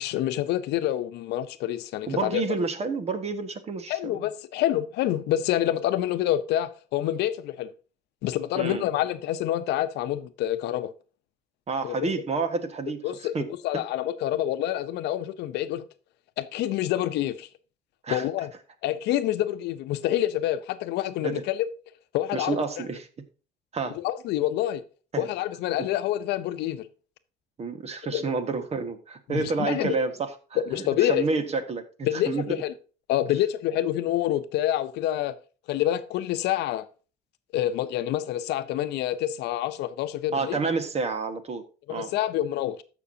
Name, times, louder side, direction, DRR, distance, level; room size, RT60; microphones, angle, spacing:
voice 1, 0.0-2.4 3.9-7.7 8.2-10.9 11.8-11.9 13.0-13.4 13.6-15.8 16.4-17.5 18.1-18.5 18.8-21.7 22.1-22.6 24.0-24.8 25.2-26.9 28.1-28.2 29.3-29.9 30.7-31.3 32.0-32.7 33.1-35.3 35.7-36.9 37.5-40.6 41.9-42.8, left 12 dB, 85° left, 0.7 m, -27 dB
voice 2, 2.1-4.3 8.5-8.8 11.7-13.0 13.3-13.8 18.0-18.3 21.2-21.4 22.3-23.1 23.7-24.0 25.1-25.3 25.8-25.9 27.6-31.8 32.1-32.4 40.3-41.6 41.9-42.1, right 4 dB, 40° right, 1.5 m, -29 dB
14.0 x 6.1 x 2.8 m
cardioid pair, 110°, 17 cm